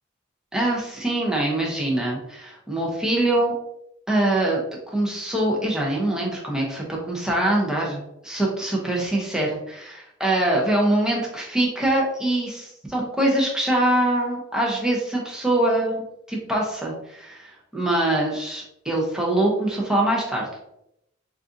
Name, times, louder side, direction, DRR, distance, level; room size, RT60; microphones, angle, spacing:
voice 1, 0.5-3.5 4.1-4.6 4.9-16.0 16.3-20.5, right 1 dB, 5° right, -3 dB, 0.7 m, -23 dB
4.0 x 2.4 x 2.6 m, 0.79 s
head